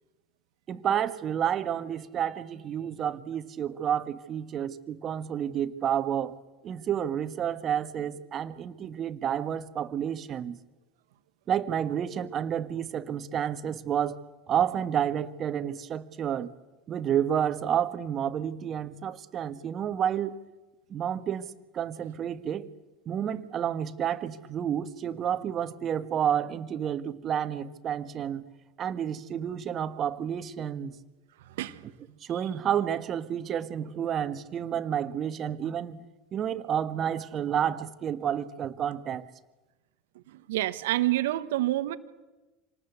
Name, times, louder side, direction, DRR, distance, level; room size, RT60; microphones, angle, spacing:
voice 1, 0.7-6.4 6.6-10.6 11.5-14.2 14.5-16.5 16.9-20.4 20.9-22.7 23.0-28.5 28.8-31.0 32.2-36.0 36.3-39.3, right 9 dB, 40° right, 11 dB, 1.6 m, -30 dB
voice 2, 40.3-42.0, right 16 dB, 75° right, 13 dB, 1.3 m, -27 dB
26.5 x 19.0 x 8.3 m, 1.1 s
hypercardioid pair, 80°, 0 cm